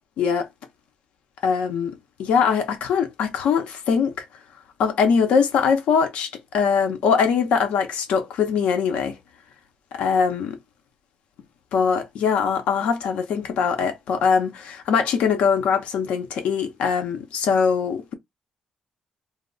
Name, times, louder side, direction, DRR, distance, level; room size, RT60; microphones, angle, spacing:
voice 1, 0.2-0.5 1.4-1.9 2.2-4.2 4.8-9.2 9.9-10.6 11.7-18.1, left 6 dB, 80° left, 0.7 m, -22 dB
2.2 x 2.1 x 3.7 m
supercardioid pair, 65°, 2 cm